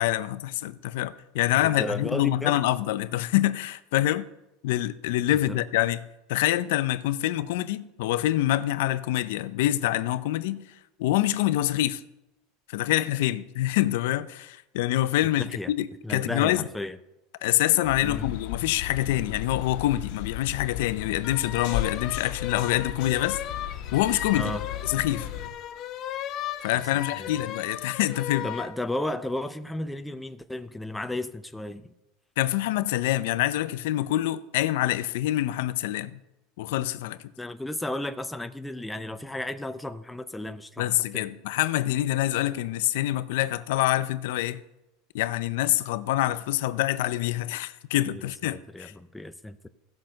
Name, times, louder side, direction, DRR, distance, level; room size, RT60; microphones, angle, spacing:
voice 1, 0.0-4.3 4.6-6.0 6.3-10.7 11.0-12.0 12.7-16.6 17.4-23.4 23.9-24.6 24.8-25.3 26.6-28.5 32.4-36.2 36.6-37.2 40.8-44.6 45.1-48.9, left 14 dB, 75° left, 0.6 m, -26 dB
voice 2, 1.6-2.6 5.5-5.6 15.5-15.7 16.0-17.0 18.0-18.3 24.3-24.7 27.2-27.4 28.4-31.9 37.4-41.2 48.2-49.7, left 1 dB, 5° left, 0.5 m, -34 dB
sound 1, 17.8-25.5, left 11 dB, 55° left, 1.9 m, -36 dB
sound 2, 21.2-28.8, left 11 dB, 35° left, 0.7 m, -36 dB
16.0 x 5.9 x 6.4 m
supercardioid pair, 150°, 0 cm